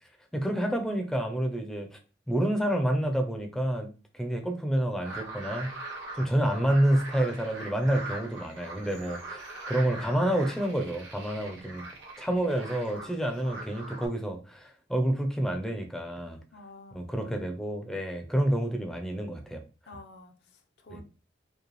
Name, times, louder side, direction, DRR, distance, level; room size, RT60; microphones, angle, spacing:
voice 1, 0.3-1.9 2.3-5.7 6.2-11.8 12.2-16.4 16.9-19.6 20.9-21.0, right 1 dB, 5° left, 0.6 m, -28 dB
sound 1, 5.0-14.1, right 2 dB, 90° right, 1.1 m, -42 dB
voice 2, 11.4-12.0 16.5-17.5 19.9-21.0, left 1 dB, 65° left, 0.7 m, -51 dB
5.1 x 2.3 x 3.1 m
head